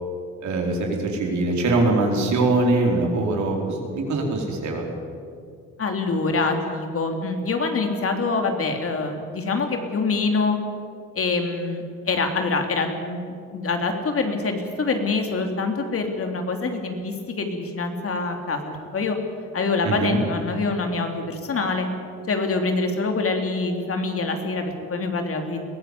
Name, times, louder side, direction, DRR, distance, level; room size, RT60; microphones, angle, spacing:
voice 1, 0.4-4.8 19.8-20.2, right 2 dB, 70° right, 1 dB, 4.6 m, -22 dB
voice 2, 5.8-10.6 11.1-19.2 19.5-21.9 22.3-25.6, left 3 dB, 50° left, 4 dB, 3.1 m, -25 dB
21.5 x 16.0 x 8.5 m, 2.3 s
cardioid pair, 90°, 30 cm